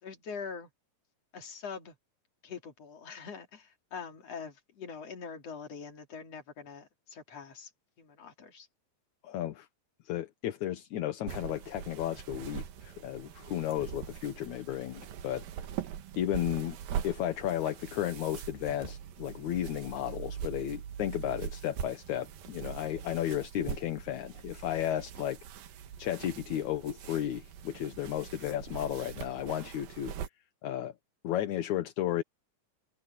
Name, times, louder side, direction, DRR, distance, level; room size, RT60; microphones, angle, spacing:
voice 1, 0.0-0.7 1.3-2.0 2.4-7.7 8.0-8.7, left 6 dB, 50° left, 3.8 m, -43 dB
voice 2, 9.2-9.7 10.1-15.4 16.2-16.8 17.0-25.4 26.0-30.1 30.6-30.9 31.2-32.2, left 11 dB, 65° left, 2.4 m, -33 dB
sound 1, 11.3-30.3, right 9 dB, 85° right, 3.2 m, -42 dB
omnidirectional pair, 4.0 m